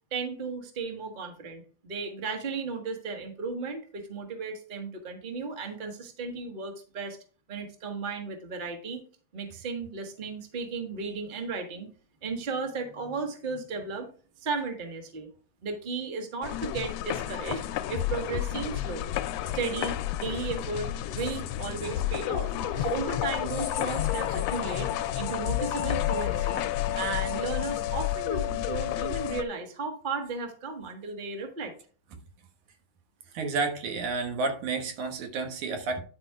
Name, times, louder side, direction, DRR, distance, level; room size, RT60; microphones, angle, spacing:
voice 1, 0.1-7.2 7.5-9.0 9.3-11.9 12.2-14.1 14.4-15.3 15.6-17.6 17.9-19.0 19.5-24.9 25.1-26.6 27.0-31.7, right 4 dB, 30° right, 4 dB, 0.8 m, -35 dB
sound 1, 16.4-29.4, left 12 dB, 80° left, 1.5 m, -30 dB
voice 2, 33.3-36.0, right 4 dB, 90° right, 4 dB, 2.8 m, -30 dB
10.5 x 4.4 x 4.6 m, 0.40 s
omnidirectional pair, 3.3 m